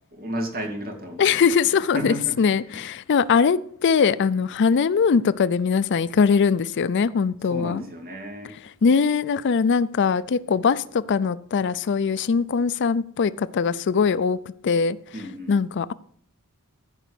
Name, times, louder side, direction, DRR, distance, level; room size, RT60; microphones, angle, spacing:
voice 1, 0.1-2.8 7.4-8.5 15.1-15.6, equal, 45° right, 2 dB, 2.7 m, -33 dB
voice 2, 1.2-7.8 8.8-14.4 14.6-15.0 15.5-15.9, left 5 dB, 55° left, 17 dB, 0.4 m, -21 dB
15.0 x 5.1 x 8.1 m, 0.63 s
head